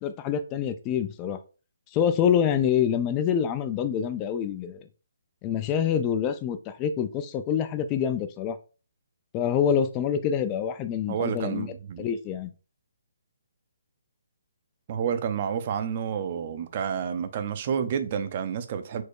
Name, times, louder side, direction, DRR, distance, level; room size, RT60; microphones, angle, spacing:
voice 1, 0.0-1.4 1.9-4.9 5.4-8.6 9.3-11.7 12.0-12.5, left 8 dB, 25° left, 0.4 m, -26 dB
voice 2, 11.1-12.1 14.9-19.0, right 7 dB, 40° right, 0.6 m, -29 dB
4.5 x 2.1 x 4.6 m
hypercardioid pair, 150°, 0 cm